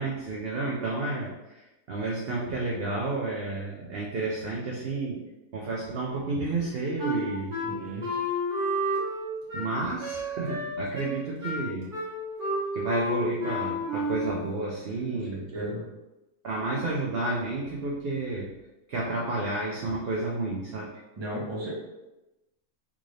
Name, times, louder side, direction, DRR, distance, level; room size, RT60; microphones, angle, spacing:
voice 1, 0.0-1.6 1.9-5.2 5.5-7.6 9.5-11.9 12.7-15.5 16.4-18.5 18.9-20.9, right 2 dB, 60° right, -3 dB, 0.7 m, -31 dB
Wind instrument woodwind instrument, 7.0-14.4, equal, 40° right, 1.1 m, -31 dB
voice 2, 7.7-8.1 15.1-15.8 21.2-21.7, right 1 dB, 25° right, -4 dB, 0.8 m, -35 dB
3.6 x 2.5 x 3.1 m, 1.0 s
omnidirectional pair, 1.4 m